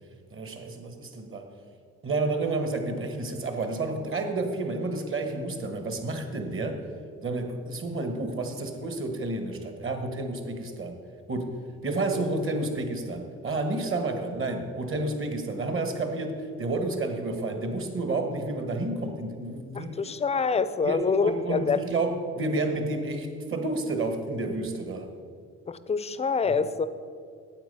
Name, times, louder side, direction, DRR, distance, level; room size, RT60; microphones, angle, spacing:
voice 1, 0.3-1.5 2.0-6.8 7.2-11.0 11.3-11.5 11.8-20.0 20.8-25.1 26.4-26.6, right 2 dB, 45° right, 6 dB, 1.4 m, -30 dB
voice 2, 19.8-21.8 25.7-26.9, left 5 dB, 20° left, 13 dB, 0.4 m, -26 dB
8.9 x 7.7 x 5.4 m, 2.2 s
cardioid pair, 90°, 30 cm